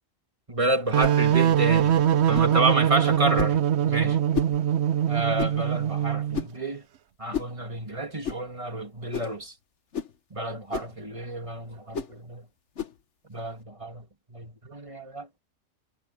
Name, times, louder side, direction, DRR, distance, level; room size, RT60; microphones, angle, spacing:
voice 1, 0.5-3.6 3.9-4.2 5.1-6.8 7.2-9.5 10.3-12.5 13.3-15.4, right 2 dB, 25° right, 2.9 m, -30 dB
sound 1, 0.9-6.4, right 10 dB, 65° right, 1.0 m, -22 dB
sound 2, 1.0-1.2 2.3-2.6 3.4-3.6 4.3-4.6 5.4-5.6 6.3-6.6 7.3-7.6 8.2-8.4 9.1-9.4 9.9-10.2 10.7-11.0 11.9-12.2 12.8-13.0, left 7 dB, 70° left, 1.6 m, -32 dB
omnidirectional pair, 1.3 m